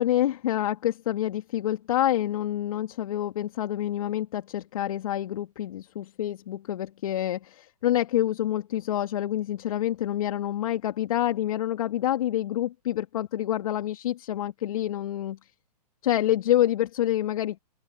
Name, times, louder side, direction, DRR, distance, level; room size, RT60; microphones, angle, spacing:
voice 1, 0.0-15.4 16.0-17.6, left 12 dB, 60° left, 2.3 m, -27 dB
open air
hypercardioid pair, 130°, 20 cm